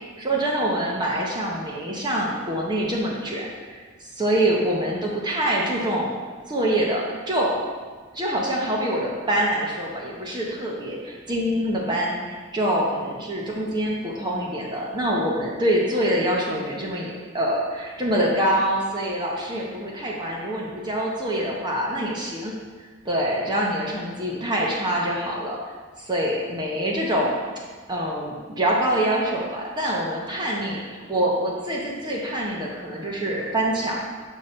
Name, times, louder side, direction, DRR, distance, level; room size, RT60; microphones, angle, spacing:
voice 1, 0.2-6.2 6.5-7.7 8.1-22.5 23.0-25.6 26.0-27.4 27.9-34.0, right 1 dB, 20° right, -3 dB, 0.7 m, -25 dB
6.5 x 2.8 x 5.4 m, 1.5 s
head